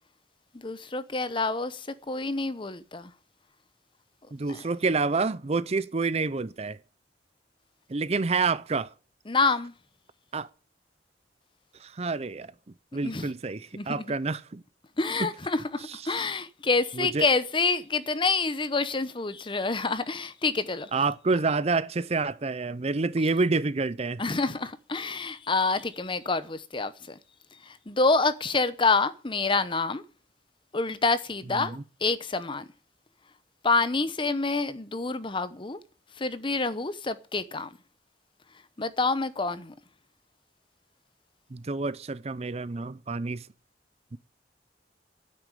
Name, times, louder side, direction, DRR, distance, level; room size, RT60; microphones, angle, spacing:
voice 1, 0.5-3.1 4.5-4.7 9.3-9.7 13.0-13.3 13.7-14.0 15.0-20.9 24.2-27.2 27.6-30.0 30.7-32.7 33.6-35.8 36.2-37.7 38.8-39.7, left 3 dB, 30° left, 0.8 m, -27 dB
voice 2, 4.3-6.8 7.9-8.9 10.3-10.5 11.8-12.5 12.9-14.6 15.2-15.3 16.0-16.2 17.0-17.3 20.9-24.2 31.5-31.8 41.5-43.5 44.1-44.2, right 3 dB, 35° right, 0.6 m, -28 dB
9.6 x 8.6 x 9.9 m
head